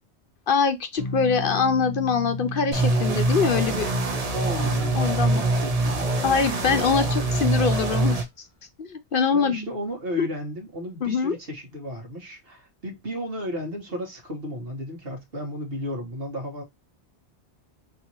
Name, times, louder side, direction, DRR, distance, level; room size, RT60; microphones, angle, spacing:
voice 1, 0.5-3.9 4.5-4.7 4.9-5.4 6.2-8.2 8.8-9.7 10.2-10.3 11.0-11.4, left 5 dB, 55° left, 0.8 m, -23 dB
sound 1, 1.0-7.8, left 1 dB, 35° left, 1.7 m, -36 dB
sound 2, 2.7-8.2, right 2 dB, 35° right, 0.9 m, -24 dB
voice 2, 4.3-6.2 7.0-7.3 9.3-16.6, equal, 60° right, 1.8 m, -34 dB
4.2 x 3.4 x 2.9 m
omnidirectional pair, 1.1 m